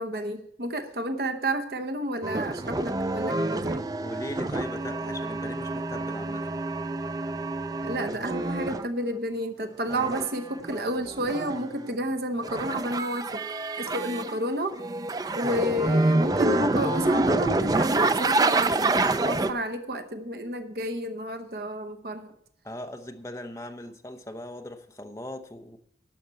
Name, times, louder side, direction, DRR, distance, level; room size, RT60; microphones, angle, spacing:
voice 1, 0.0-3.8 7.8-13.4 13.7-14.8 15.3-22.3, equal, 60° right, 6 dB, 0.9 m, -31 dB
sound 1, 2.2-8.9 9.8-11.9 12.4-14.4 14.7-19.5, right 2 dB, 20° right, 0.4 m, -27 dB
voice 2, 4.0-6.5 22.6-25.8, left 1 dB, 15° left, 5 dB, 0.8 m, -39 dB
12.0 x 5.9 x 8.2 m, 0.72 s
head